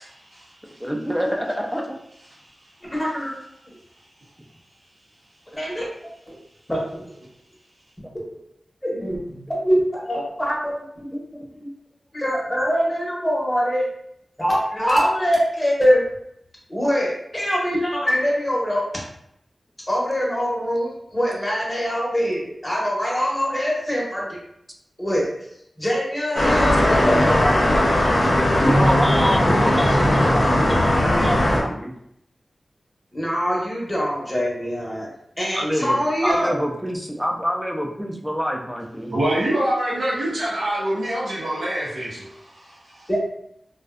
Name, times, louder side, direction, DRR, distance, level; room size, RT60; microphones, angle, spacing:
voice 1, 0.8-2.0 28.6-31.9 35.5-39.1, equal, 5° right, 1 dB, 0.4 m, -26 dB
voice 2, 2.9-3.4 5.5-5.8 6.3-6.4 6.7-7.0 8.8-11.2 11.5-11.7 12.1-13.8 14.4-16.1 16.7-18.8 19.9-24.4 25.0-25.3 25.8-27.6 33.1-35.1 35.4-36.6 43.1-43.2, equal, 15° left, -4 dB, 0.8 m, -23 dB
sound 1, 26.4-31.6, left 1 dB, 60° left, 0.6 m, -18 dB
voice 3, 39.1-43.1, right 1 dB, 90° right, -7 dB, 0.6 m, -25 dB
2.5 x 2.1 x 2.3 m, 0.75 s
wide cardioid pair, 95°, 0 cm